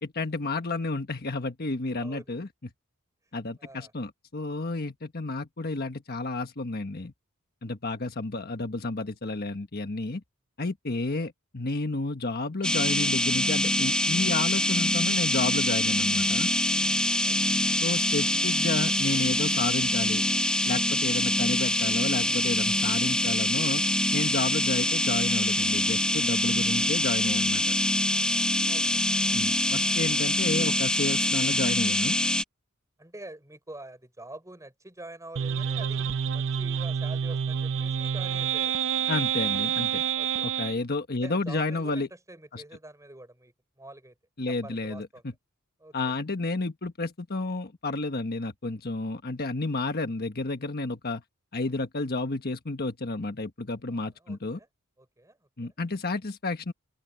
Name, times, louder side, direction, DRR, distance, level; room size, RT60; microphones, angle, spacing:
voice 1, 0.0-2.5 3.3-7.1 7.6-10.2 10.6-16.5 17.8-20.2 20.6-23.8 24.1-27.7 29.3-32.2 39.1-40.0 40.4-42.1 42.5-42.6 44.4-45.3 45.9-51.2 51.5-54.6 55.6-56.7, left 2 dB, 45° left, 1.3 m, -31 dB
voice 2, 1.9-2.3 3.6-3.9 11.1-11.3 17.2-17.7 28.7-29.0 33.0-38.7 40.1-40.5 41.2-44.1 44.5-45.2 45.8-46.1 53.9-54.7 55.0-55.8, right 1 dB, 15° right, 5.9 m, -46 dB
sound 1, 12.6-32.4, left 1 dB, 5° left, 1.0 m, -25 dB
sound 2, 35.4-40.8, right 8 dB, 60° right, 0.6 m, -28 dB
open air
head